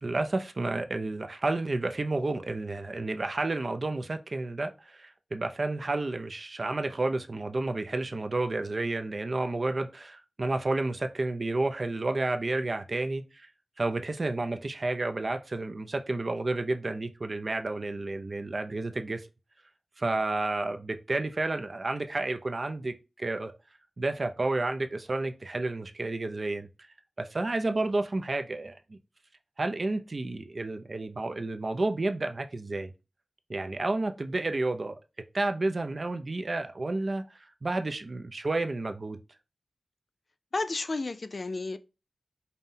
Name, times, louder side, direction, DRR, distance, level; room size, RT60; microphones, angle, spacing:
voice 1, 0.0-13.5 13.8-19.3 20.0-23.5 24.0-26.7 27.2-29.0 29.6-32.9 33.5-35.0 35.3-37.2 37.6-39.2, right 2 dB, 45° right, 0.4 m, -31 dB
voice 2, 40.5-41.8, left 3 dB, 50° left, 0.3 m, -32 dB
5.4 x 2.1 x 2.6 m
wide cardioid pair, 85°, 0 cm